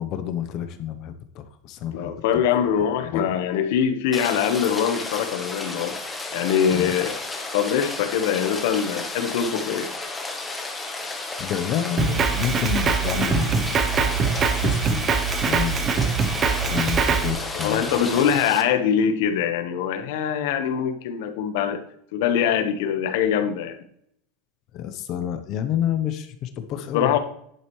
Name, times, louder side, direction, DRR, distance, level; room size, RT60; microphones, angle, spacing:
voice 1, 0.0-2.1 3.1-3.4 6.7-6.9 11.4-14.3 14.5-15.0 15.4-16.0 16.7-18.0 24.7-27.2, left 10 dB, 40° left, 9 dB, 0.8 m, -29 dB
voice 2, 1.9-6.0 6.3-7.2 7.5-9.9 17.5-21.8 22.1-23.8 26.9-27.2, left 8 dB, 65° left, 8 dB, 1.2 m, -23 dB
Rain, 4.1-18.6, left 3 dB, 10° left, 1.1 m, -32 dB
Drum kit, 12.0-17.3, right 6 dB, 25° right, 0.8 m, -23 dB
10.5 x 7.8 x 3.1 m, 0.69 s
supercardioid pair, 160°, 0 cm